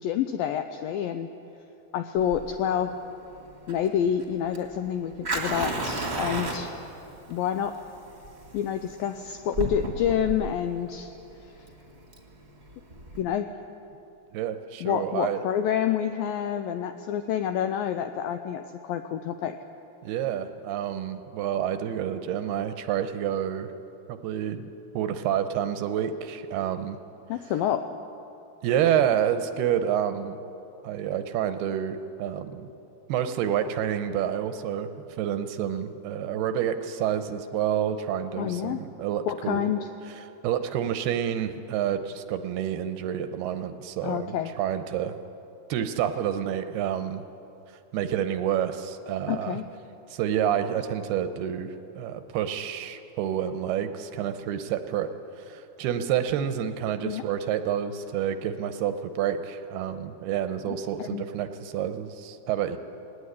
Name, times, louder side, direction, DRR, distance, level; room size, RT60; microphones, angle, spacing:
voice 1, 0.0-1.3 1.9-3.0 3.7-6.7 7.3-7.8 8.5-11.1 13.2-13.6 14.8-19.6 27.3-28.0 38.4-38.8 39.3-39.9 44.0-44.5 49.3-49.7 57.0-57.2 60.7-61.2, left 9 dB, 85° left, 8 dB, 2.0 m, -28 dB
Fire, 2.2-13.2, right 2 dB, 25° right, 1.4 m, -35 dB
voice 2, 14.3-15.4 20.0-23.7 24.1-27.0 28.6-30.4 30.8-32.7 33.1-34.9 35.2-39.7 40.4-45.2 45.7-47.2 47.9-49.6 50.1-55.1 55.4-62.8, right 9 dB, 80° right, 9 dB, 2.7 m, -28 dB
19.0 x 18.0 x 9.8 m, 2.8 s
omnidirectional pair, 4.9 m